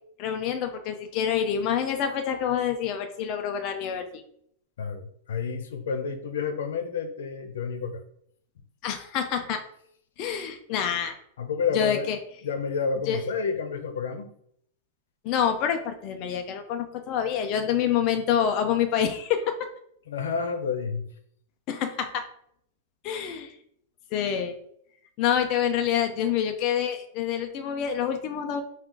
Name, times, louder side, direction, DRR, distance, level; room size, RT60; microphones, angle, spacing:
voice 1, 0.2-4.2 8.8-9.6 10.2-11.1 11.7-12.2 13.1-13.2 15.2-19.5 21.7-22.2 23.0-23.5 24.1-24.5 25.2-28.6, left 8 dB, 30° left, 6 dB, 0.4 m, -27 dB
voice 2, 4.8-8.0 11.4-12.1 12.4-14.3 20.1-21.1, left 5 dB, 85° left, 8 dB, 0.6 m, -30 dB
4.7 x 2.4 x 3.7 m, 0.67 s
supercardioid pair, 180°, 0 cm